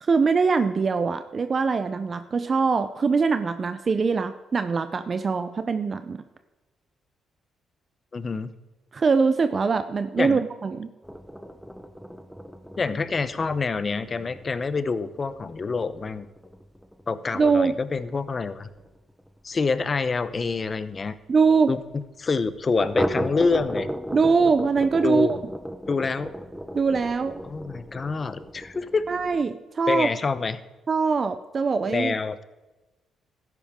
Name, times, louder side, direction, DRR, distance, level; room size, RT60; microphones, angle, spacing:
voice 1, 0.0-6.2 8.9-10.9 17.3-17.8 21.3-21.7 24.1-25.4 26.7-27.4 29.1-30.1 30.9-32.1, right 4 dB, 40° right, 10 dB, 0.6 m, -23 dB
voice 2, 8.1-8.5 10.2-10.4 12.8-16.3 17.1-18.7 19.4-21.1 21.7-21.8 22.2-23.9 25.0-25.3 25.9-26.3 27.4-29.1 29.9-30.6 31.8-32.4, left 4 dB, 35° left, 14 dB, 0.8 m, -26 dB
sound 1, 11.0-20.3 20.6-20.7 21.0-21.1 21.5-21.6 22.8-29.5, equal, ahead, 0.8 m, -35 dB
13.0 x 10.5 x 3.7 m, 1.1 s
cardioid pair, 90°, 0 cm